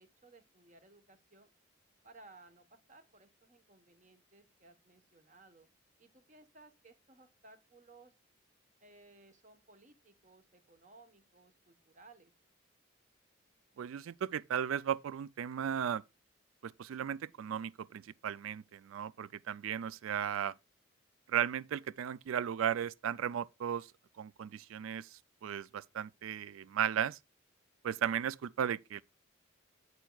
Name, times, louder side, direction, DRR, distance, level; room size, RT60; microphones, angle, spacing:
voice 1, 0.0-1.5 2.0-5.7 6.0-8.1 8.8-12.3, right 2 dB, 35° right, 1.1 m, -60 dB
voice 2, 13.8-16.0 16.6-20.5 21.3-23.9 24.2-27.2 27.8-29.0, right 9 dB, 85° right, 0.3 m, -36 dB
8.9 x 8.1 x 2.3 m
head